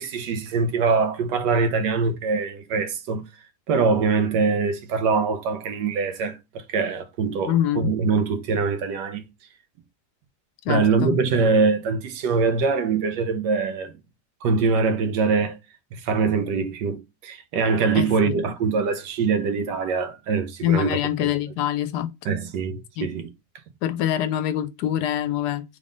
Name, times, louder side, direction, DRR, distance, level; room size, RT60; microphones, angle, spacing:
voice 1, 0.0-3.2 3.7-9.2 10.7-13.9 14.4-15.6 15.9-21.3 22.2-23.3, right 4 dB, 85° right, 1.4 m, -23 dB
voice 2, 7.5-7.9 10.7-11.2 17.9-18.4 20.6-22.1 23.0-23.1 23.8-25.6, left 11 dB, 75° left, 1.1 m, -24 dB
3.7 x 3.5 x 3.8 m
omnidirectional pair, 1.8 m